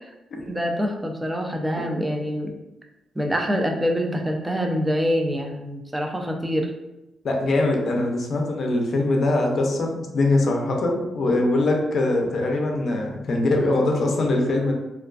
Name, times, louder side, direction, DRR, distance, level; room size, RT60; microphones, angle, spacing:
voice 1, 0.4-2.5 3.2-6.7, equal, 10° right, 2 dB, 0.3 m, -25 dB
voice 2, 7.2-14.7, left 2 dB, 55° left, 1 dB, 0.5 m, -22 dB
2.3 x 2.3 x 2.3 m, 0.96 s
cardioid pair, 110°, 0 cm